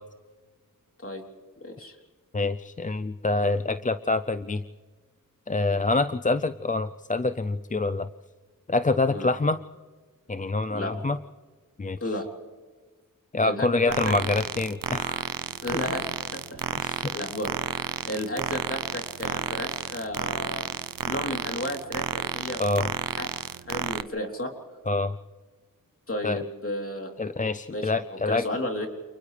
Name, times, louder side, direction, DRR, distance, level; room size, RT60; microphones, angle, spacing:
voice 1, 1.6-1.9 9.1-9.3 10.7-10.9 12.0-12.3 13.4-14.1 15.6-20.7 21.0-22.6 23.1-23.3 23.7-24.5 26.1-27.1 27.7-28.9, left 1 dB, 40° left, 2 dB, 3.4 m, -33 dB
voice 2, 2.3-4.6 5.5-8.1 8.7-9.6 10.3-11.2 11.8-12.0 13.3-15.2 16.8-17.1 22.6-22.9 24.9-25.2 26.2-26.4 27.2-28.4, left 3 dB, 25° left, 10 dB, 0.5 m, -26 dB
sound 1, 13.9-24.0, right 7 dB, 80° right, 0.7 m, -31 dB
29.0 x 28.5 x 3.4 m, 1.4 s
wide cardioid pair, 85°, 33 cm